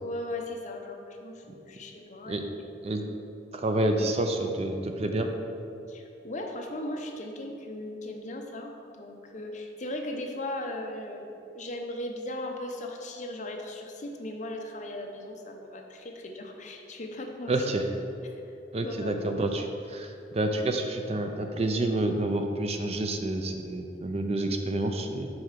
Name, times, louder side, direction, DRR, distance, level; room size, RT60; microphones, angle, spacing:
voice 1, 0.0-2.5 5.9-17.5 18.2-18.4 18.8-19.2, left 1 dB, 45° left, 2 dB, 0.7 m, -38 dB
voice 2, 3.5-5.3 17.5-17.9 18.7-25.3, right 1 dB, 35° right, 5 dB, 0.5 m, -28 dB
5.2 x 4.8 x 5.7 m, 2.7 s
head